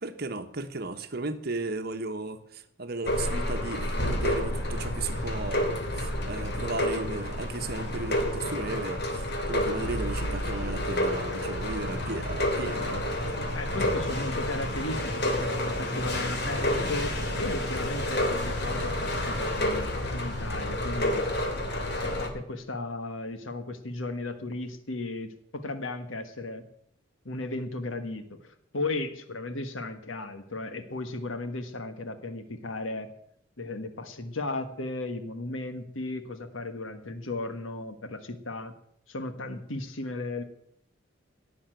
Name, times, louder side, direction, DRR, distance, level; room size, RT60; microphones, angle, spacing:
voice 1, 0.0-13.5, right 2 dB, 50° right, 7 dB, 1.2 m, -35 dB
sound 1, 3.1-22.3, left 1 dB, 55° left, 3.0 m, -29 dB
voice 2, 13.5-21.3 21.9-26.7 27.2-33.1 33.6-38.7 39.1-40.4, left 2 dB, 80° left, 9 dB, 1.5 m, -35 dB
18.0 x 7.1 x 9.1 m, 0.75 s
head